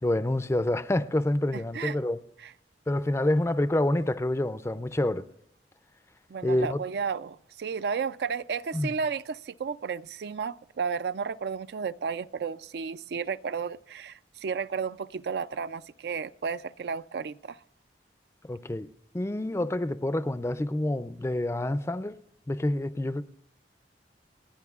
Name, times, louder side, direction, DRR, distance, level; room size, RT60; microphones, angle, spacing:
voice 1, 0.0-2.2 2.9-5.3 6.4-6.8 8.7-8.9 18.4-18.9 19.1-22.2 22.5-23.2, left 1 dB, 15° left, 0.4 m, -27 dB
voice 2, 6.3-17.6, right 6 dB, 60° right, 0.4 m, -33 dB
30.0 x 10.0 x 2.4 m
head